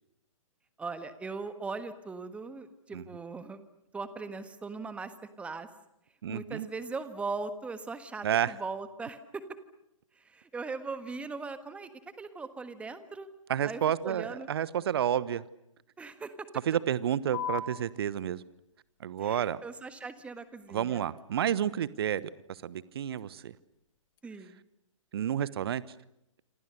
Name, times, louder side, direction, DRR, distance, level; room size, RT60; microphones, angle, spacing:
voice 1, 0.8-3.7 3.9-5.7 6.3-9.4 10.1-11.9 12.2-13.3 13.6-14.5 16.0-16.5 19.2-21.1 24.2-24.6, right 4 dB, 5° right, 12 dB, 1.4 m, -39 dB
voice 2, 6.2-6.7 8.2-8.5 13.5-15.4 16.7-18.4 19.0-19.6 20.7-23.6 25.1-25.8, right 10 dB, 45° right, 19 dB, 1.1 m, -30 dB
sound 1, 17.3-24.3, left 6 dB, 40° left, 1.9 m, -45 dB
27.5 x 26.5 x 6.6 m, 0.83 s
figure-of-eight pair, 120°, 17 cm